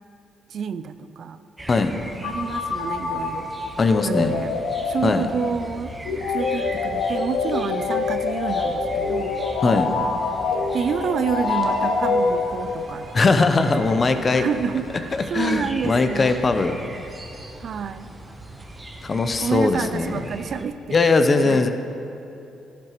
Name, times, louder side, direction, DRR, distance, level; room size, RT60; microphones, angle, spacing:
voice 1, 0.5-1.4 1.9-3.5 4.0-4.6 4.8-5.9 6.3-9.4 10.0-10.1 10.7-14.0 14.3-16.4 17.6-18.1 19.4-21.0 21.4-21.7, right 7 dB, 60° right, 12 dB, 0.3 m, -29 dB
sound 1, 1.6-20.7, right 1 dB, 15° right, 1.0 m, -40 dB
sound 2, 2.2-13.0, left 4 dB, 80° left, 0.8 m, -25 dB
voice 2, 3.8-4.3 5.0-5.2 9.6-9.9 13.1-14.5 15.1-16.7 19.0-20.2 20.9-21.7, left 3 dB, 35° left, 8 dB, 0.6 m, -20 dB
sound 3, 11.3-17.8, right 3 dB, 75° right, 1.4 m, -42 dB
11.0 x 10.5 x 3.0 m, 2.7 s
cardioid pair, 90°, 0 cm